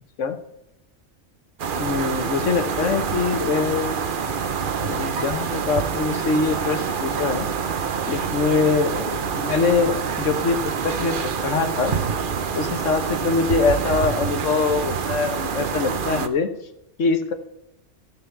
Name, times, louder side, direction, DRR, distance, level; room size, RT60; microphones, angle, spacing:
sound 1, 1.6-16.3, right 6 dB, 50° right, 0.9 m, -26 dB
voice 1, 1.8-3.9 4.8-7.5 8.1-11.9 12.5-16.5 17.0-17.3, left 4 dB, 80° left, 8 dB, 1.5 m, -23 dB
14.5 x 5.9 x 6.8 m, 0.86 s
omnidirectional pair, 1.3 m